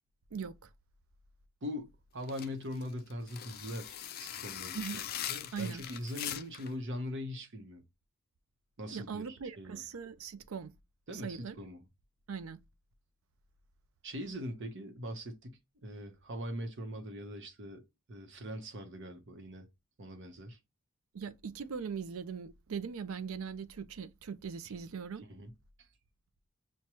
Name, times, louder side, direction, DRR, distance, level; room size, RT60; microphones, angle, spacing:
voice 1, 0.3-0.7 4.7-5.0 5.5-5.8 8.9-10.7 11.1-11.6 12.3-12.6 21.1-25.2, right 6 dB, 85° right, 0.5 m, -40 dB
voice 2, 1.6-4.9 5.3-7.8 8.8-9.8 11.1-11.8 14.0-17.8 18.1-19.7 20.0-20.6 25.3-25.5 25.8-25.9, equal, 60° right, 0.8 m, -41 dB
sound 1, 2.2-6.7, left 10 dB, 50° left, 0.4 m, -41 dB
6.0 x 2.2 x 2.9 m
head